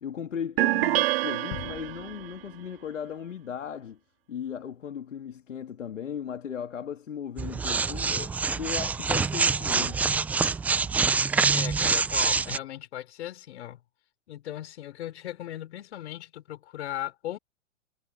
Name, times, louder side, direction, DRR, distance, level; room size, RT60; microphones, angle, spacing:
voice 1, 0.0-4.0 4.3-10.1, left 8 dB, 80° left, 2.8 m, -37 dB
sound 1, 0.6-2.3, right 19 dB, 50° right, 2.0 m, -26 dB
sound 2, 1.5-3.4 3.8-3.9, left 24 dB, 45° left, 7.2 m, -45 dB
sound 3, 7.4-12.6, right 5 dB, 5° right, 0.4 m, -25 dB
voice 2, 11.5-13.8 14.3-17.4, left 12 dB, 60° left, 5.9 m, -37 dB
hypercardioid pair, 125°, 37 cm